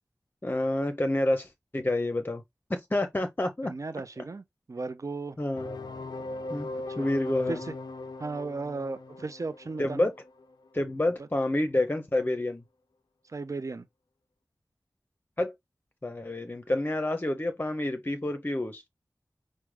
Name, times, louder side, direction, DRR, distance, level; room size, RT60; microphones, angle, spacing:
voice 1, 0.4-2.4 2.7-3.7 5.4-5.7 6.5-6.7 7.0-7.6 9.8-10.1 10.7-12.6 15.4-15.5 16.0-18.9, left 1 dB, 30° left, 0.6 m, -28 dB
voice 2, 3.6-5.4 6.9-7.1 7.5-7.7 8.2-10.1 11.2-11.3 13.3-13.9, right 3 dB, 50° right, 0.5 m, -36 dB
sound 1, 5.5-11.2, left 2 dB, 85° left, 0.4 m, -40 dB
4.8 x 2.1 x 3.2 m
wide cardioid pair, 50°, 7 cm